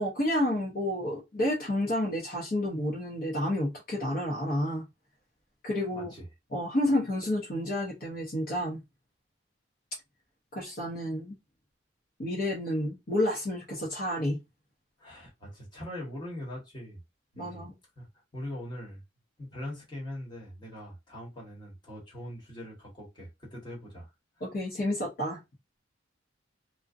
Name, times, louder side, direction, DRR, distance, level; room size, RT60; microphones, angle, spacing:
voice 1, 0.0-4.8 5.6-6.1 6.5-8.8 10.5-11.3 12.2-14.4 17.4-17.7 24.4-25.4, left 1 dB, 45° left, 0.7 m, -30 dB
voice 2, 5.9-6.3 15.0-17.0 17.3-17.7 18.0-18.1 18.3-19.0 19.4-24.1, left 1 dB, 25° left, 1.1 m, -41 dB
2.5 x 2.1 x 2.4 m
head